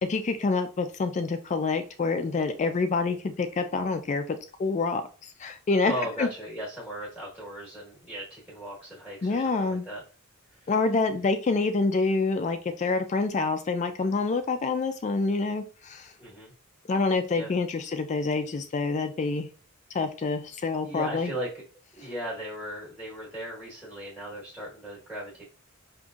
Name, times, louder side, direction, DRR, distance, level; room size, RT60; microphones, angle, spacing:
voice 1, 0.0-5.9 6.2-6.3 9.2-9.8 10.7-16.1 16.9-19.5 19.9-21.3 22.0-22.1, left 3 dB, 30° left, 8 dB, 0.3 m, -27 dB
voice 2, 5.8-10.0 10.6-10.7 16.2-16.5 17.3-17.5 20.8-21.6 21.9-25.4, right 1 dB, ahead, -6 dB, 1.2 m, -37 dB
5.2 x 2.6 x 2.4 m, 0.36 s
head